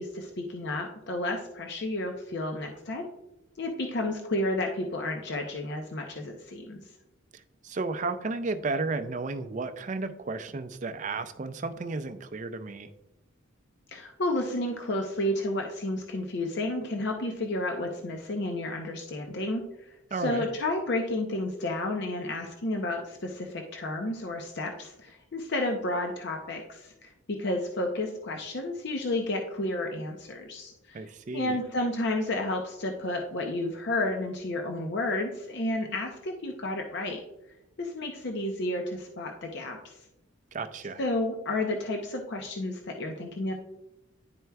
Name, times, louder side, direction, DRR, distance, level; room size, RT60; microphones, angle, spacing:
voice 1, 0.0-3.1 3.6-6.8 13.9-31.0 31.3-37.2 37.8-40.0 41.0-43.5, left 1 dB, 55° left, 3 dB, 0.6 m, -31 dB
voice 2, 7.6-12.9 20.1-20.5 30.9-31.6 40.5-41.0, right 3 dB, 35° right, 10 dB, 0.4 m, -33 dB
10.5 x 4.5 x 2.3 m, 0.92 s
head